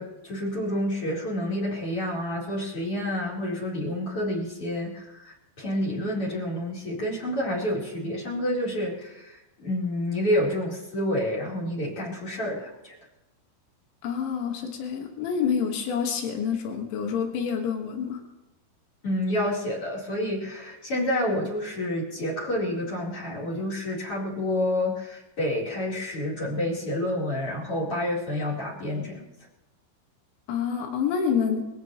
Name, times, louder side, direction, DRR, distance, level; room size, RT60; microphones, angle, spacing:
voice 1, 0.0-12.9 19.0-29.2, left 1 dB, 30° left, -4 dB, 4.4 m, -29 dB
voice 2, 14.0-18.2 30.5-31.7, left 7 dB, 90° left, 3 dB, 4.0 m, -27 dB
23.0 x 16.0 x 3.1 m, 1.0 s
omnidirectional pair, 5.1 m